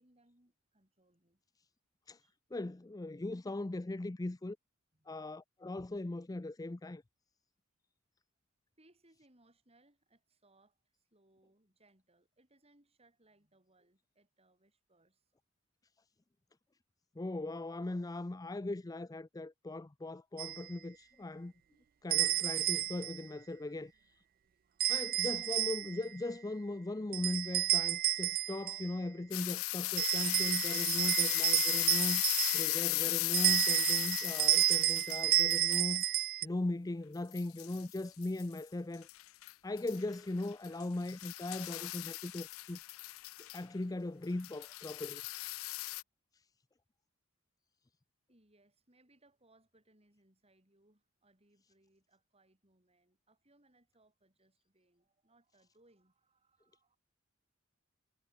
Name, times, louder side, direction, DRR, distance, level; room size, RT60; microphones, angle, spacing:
voice 1, 0.0-1.4 2.2-2.4 4.0-4.1 4.9-5.2 8.8-15.2 48.3-57.0, right 2 dB, 30° right, 7.6 m, -70 dB
voice 2, 2.5-4.6 5.1-7.0 17.2-21.5 22.0-23.9 24.9-32.2 32.5-36.0 36.4-39.1 39.6-42.8 43.4-45.2, left 2 dB, 15° left, 0.5 m, -39 dB
sound 1, 20.4-20.6 22.1-23.2 24.8-26.0 27.1-28.9 30.0-32.8 33.3-36.4, right 15 dB, 45° right, 0.4 m, -31 dB
sound 2, 29.3-36.0 37.4-38.6 39.1-39.5 39.8-43.6 44.4-46.0, left 21 dB, 85° left, 0.4 m, -36 dB
head